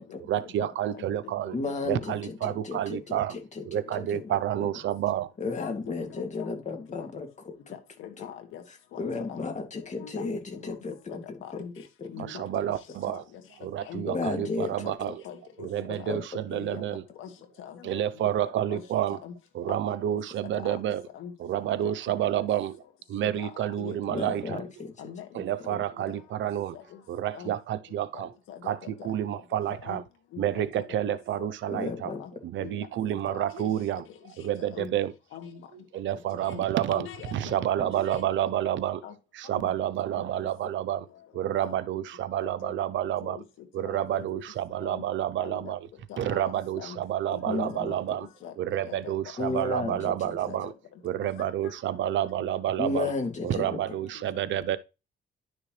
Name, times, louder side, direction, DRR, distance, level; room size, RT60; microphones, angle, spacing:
voice 1, 0.3-1.6 1.8-3.4 3.7-5.3 12.2-13.2 13.6-15.2 15.6-17.0 17.8-19.2 19.5-21.1 21.4-22.8 23.1-24.6 25.3-26.8 27.1-28.3 28.6-30.0 30.4-32.1 32.4-34.1 34.4-35.1 35.7-39.0 39.3-41.1 41.3-43.4 43.7-45.9 46.2-48.3 48.6-50.7 51.0-53.1 53.4-54.8, right 11 dB, 70° right, 0.7 m, -29 dB
voice 2, 1.5-4.7 5.4-7.3 9.0-11.2 12.0-12.2 14.1-14.7 15.9-16.2 24.1-24.9 31.7-32.2 37.8-37.9 47.5-47.9 49.4-50.5 52.8-53.7, left 3 dB, 35° left, 2.5 m, -33 dB
voice 3, 5.6-6.2 6.9-7.1 8.0-8.6 8.9-9.0 9.3-9.5 10.0-10.2 11.1-11.7 12.1-12.4 13.1-13.2 13.9-14.0 14.4-14.7 15.0-15.7 16.0-16.2 16.5-16.8 17.2-17.3 17.6-18.3 18.7-18.8 19.2-19.3 19.7-19.8 20.6-20.8 21.1-21.3 21.7-21.9 22.2-22.3 23.2-23.5 23.8-24.0 24.5-24.7 25.0-25.3 25.7-25.8 26.7-26.8 27.3-27.5 28.1-28.2 28.5-28.9 29.5-30.0 30.3-31.8 32.0-32.3 32.6-32.7 33.3-33.5 34.7-34.9 35.3-35.6 36.5-36.6 36.9-38.2 39.0-39.1 39.5-39.7 41.6-41.8 42.6-42.7 43.0-43.4 43.8-44.2 44.8-45.0 45.4-45.7 46.1-46.5 46.8-47.0 47.3-47.6 48.4-48.5 48.9-49.1 49.4-49.6 49.9-50.1 50.5-50.7 51.4-51.5 52.0-52.1 54.5-54.6, left 9 dB, 85° left, 2.0 m, -42 dB
11.0 x 6.3 x 3.3 m
cardioid pair, 90°, 20 cm